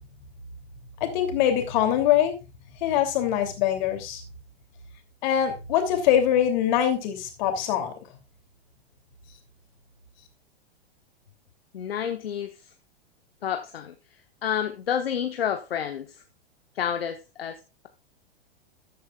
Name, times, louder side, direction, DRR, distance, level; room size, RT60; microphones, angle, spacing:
voice 1, 1.0-2.4 2.8-4.2 5.2-7.9, left 10 dB, 45° left, 2.9 m, -23 dB
voice 2, 11.7-12.7 13.4-13.9 14.4-16.2 16.7-17.9, left 9 dB, 65° left, 1.1 m, -30 dB
14.0 x 9.5 x 2.4 m
figure-of-eight pair, 100°, 31 cm